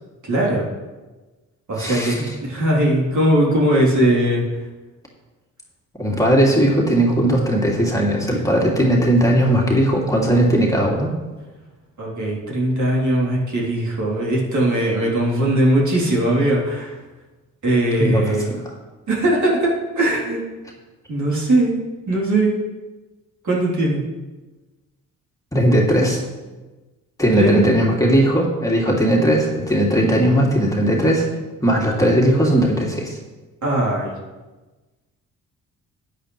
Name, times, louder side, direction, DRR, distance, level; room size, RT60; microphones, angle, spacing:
voice 1, 0.2-0.7 1.7-2.2 2.4-4.4 12.0-17.0 17.6-18.5 19.1-20.4 21.1-21.7 22.1-22.5 23.4-24.0 27.4-27.7 33.6-34.1, right 1 dB, 50° right, -4 dB, 3.5 m, -19 dB
voice 2, 1.8-2.3 6.0-11.1 18.0-18.3 25.5-26.2 27.2-31.3 31.6-33.2, right 1 dB, 10° left, -3 dB, 2.7 m, -18 dB
12.5 x 9.0 x 3.3 m, 1.2 s
hypercardioid pair, 45°, 39 cm